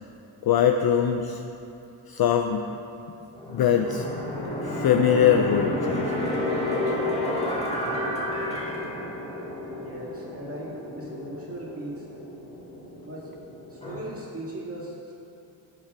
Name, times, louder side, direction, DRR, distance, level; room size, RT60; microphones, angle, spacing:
voice 1, 0.4-1.4 2.1-2.8 3.5-4.1 4.6-6.3 6.9-7.0, left 8 dB, 50° left, 5 dB, 0.5 m, -22 dB
sound 1, 3.4-14.0, left 1 dB, 15° left, 1.6 m, -31 dB
voice 2, 9.7-12.1 13.0-13.3 13.7-15.1, right 1 dB, 30° right, -5 dB, 2.2 m, -38 dB
10.5 x 5.4 x 4.9 m, 2.9 s
cardioid pair, 100°, 49 cm